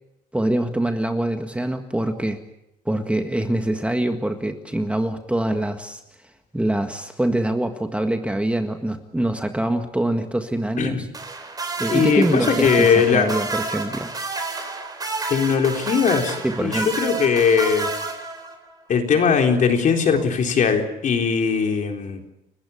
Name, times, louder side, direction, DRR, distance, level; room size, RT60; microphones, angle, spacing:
voice 1, 0.3-2.4 2.9-6.0 6.5-11.1 11.8-14.1 16.4-16.9, right 1 dB, 5° right, 6 dB, 1.7 m, -24 dB
sound 1, 11.1-18.7 20.1-20.3, right 3 dB, 20° right, 4.0 m, -30 dB
voice 2, 11.9-13.3 15.3-17.9 18.9-22.2, left 6 dB, 50° left, 4 dB, 4.0 m, -20 dB
30.0 x 15.0 x 8.6 m, 0.87 s
cardioid pair, 110°, 17 cm